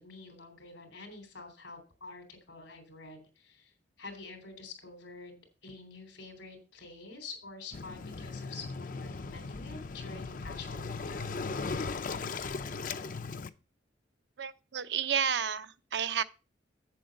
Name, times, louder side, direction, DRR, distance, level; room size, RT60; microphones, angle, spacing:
voice 1, 0.0-3.7 4.0-11.3, left 3 dB, 85° left, 3.2 m, -47 dB
Waves surf, 7.7-13.5, left 4 dB, 45° left, 0.5 m, -38 dB
voice 2, 14.4-16.2, right 7 dB, 65° right, 0.6 m, -31 dB
7.8 x 7.7 x 5.1 m
head